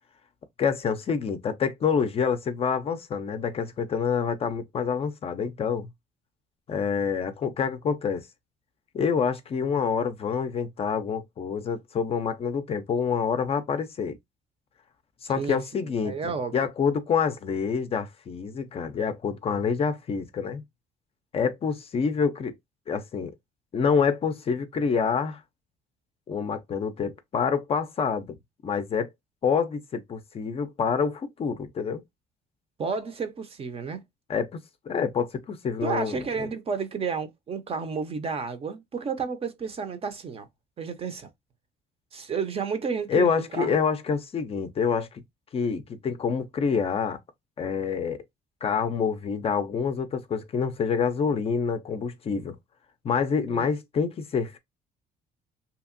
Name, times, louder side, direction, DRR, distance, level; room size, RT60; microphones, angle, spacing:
voice 1, 0.6-5.9 6.7-8.3 8.9-14.2 15.2-20.6 21.3-22.5 22.9-23.3 23.7-25.4 26.3-28.3 28.6-29.1 29.4-32.0 34.3-34.6 34.9-36.5 43.1-45.1 45.5-47.2 47.6-48.2 48.6-52.5 53.0-54.6, left 6 dB, 35° left, 0.4 m, -27 dB
voice 2, 15.4-16.5 32.8-34.0 35.8-40.5 40.8-41.3 42.1-43.8 53.5-53.7, right 5 dB, 35° right, 0.5 m, -31 dB
2.8 x 2.4 x 2.5 m
cardioid pair, 110°, 17 cm